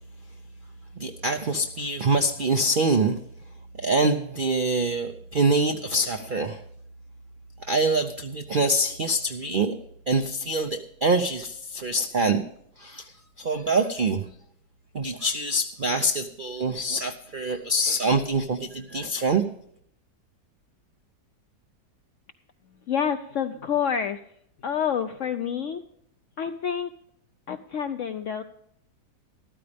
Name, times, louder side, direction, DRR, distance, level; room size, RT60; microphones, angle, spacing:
voice 1, 1.0-3.2 3.8-6.6 7.7-9.7 10.1-12.4 12.8-14.3 14.9-19.4, right 2 dB, 90° right, 6 dB, 0.4 m, -25 dB
voice 2, 22.9-24.2 24.6-25.8 26.4-26.9 27.5-28.4, left 8 dB, 70° left, 9 dB, 0.7 m, -28 dB
13.5 x 13.0 x 3.4 m, 0.69 s
omnidirectional pair, 1.9 m